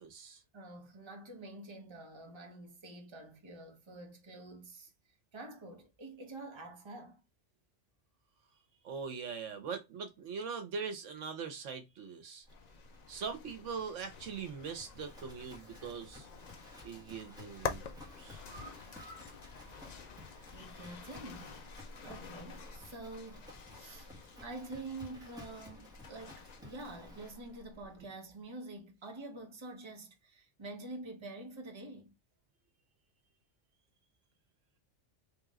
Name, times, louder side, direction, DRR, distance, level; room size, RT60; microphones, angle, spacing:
voice 1, 0.0-0.4 8.8-12.4 13.1-16.3 16.8-18.4, right 5 dB, 75° right, 1.2 m, -42 dB
voice 2, 0.5-4.9 5.3-7.2 20.5-24.1 24.4-32.1, right 2 dB, 25° right, 1.0 m, -47 dB
Livestock farm animals working animals, 12.4-28.0, left 1 dB, 5° right, 1.5 m, -54 dB
sound 1, 12.5-27.3, left 6 dB, 55° left, 0.5 m, -48 dB
sound 2, 16.6-17.0 17.4-20.8 21.1-21.2 21.6-21.7, right 3 dB, 55° right, 1.2 m, -58 dB
3.5 x 3.0 x 3.6 m
omnidirectional pair, 1.3 m